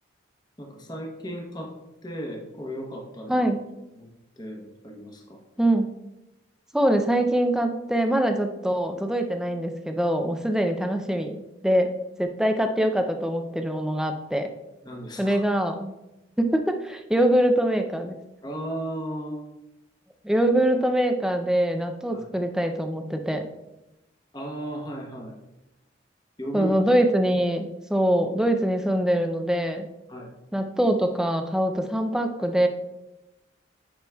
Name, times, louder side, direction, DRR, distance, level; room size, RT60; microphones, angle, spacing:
voice 1, 0.6-1.7 2.0-3.4 3.9-4.1 4.4-5.4 14.8-15.4 18.4-19.4 22.1-22.3 24.3-25.3 26.4-26.7 30.1-30.3, right 1 dB, 20° left, 1 dB, 0.9 m, -35 dB
voice 2, 5.6-5.9 6.7-11.4 11.6-11.9 12.2-14.5 15.2-15.9 16.4-18.2 20.2-23.5 26.5-29.9 30.5-32.7, right 1 dB, 5° right, 5 dB, 0.4 m, -23 dB
10.5 x 4.7 x 2.3 m, 0.95 s
head